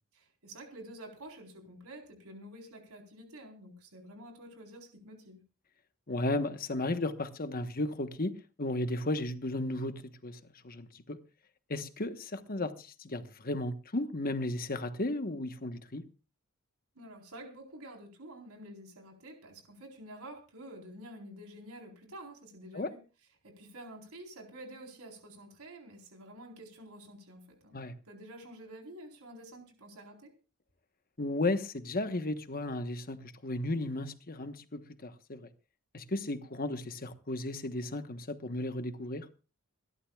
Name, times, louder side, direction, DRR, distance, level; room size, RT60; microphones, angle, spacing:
voice 1, 0.1-5.4 16.9-23.0 23.4-27.8 28.0-30.3, right 1 dB, 85° right, 4.3 m, -49 dB
voice 2, 6.1-8.3 8.6-10.4 10.6-11.2 11.7-16.0 22.7-22.9 27.7-27.9 31.2-35.5 35.9-39.3, left 2 dB, 45° left, 1.3 m, -34 dB
26.5 x 12.5 x 2.4 m
head